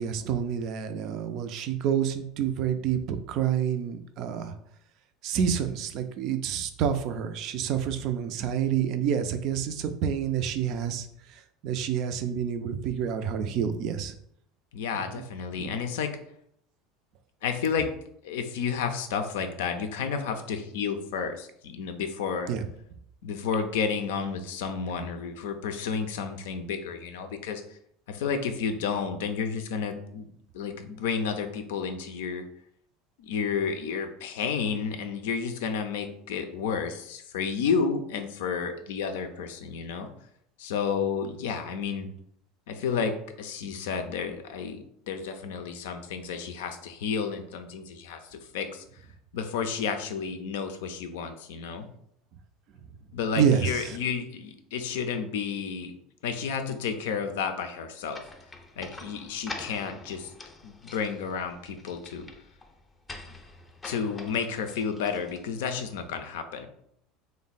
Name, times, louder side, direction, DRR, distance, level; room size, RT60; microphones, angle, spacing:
voice 1, 0.0-4.5 5.2-11.1 11.6-14.1 15.1-15.2 15.5-15.7 22.5-22.6 53.3-53.9, right 8 dB, 50° right, 9 dB, 0.4 m, -28 dB
voice 2, 14.7-16.1 17.4-17.9 18.2-22.5 23.2-27.6 28.1-30.3 30.5-32.4 33.2-40.1 40.6-42.1 42.7-48.8 49.3-51.9 53.1-55.9 56.2-58.2 58.8-60.3 60.6-62.3 63.8-66.7, left 6 dB, 65° left, 7 dB, 0.4 m, -31 dB
sound 1, 58.1-65.8, left 2 dB, 15° left, 0.6 m, -45 dB
3.2 x 2.1 x 4.0 m, 0.70 s
figure-of-eight pair, 70°, 0 cm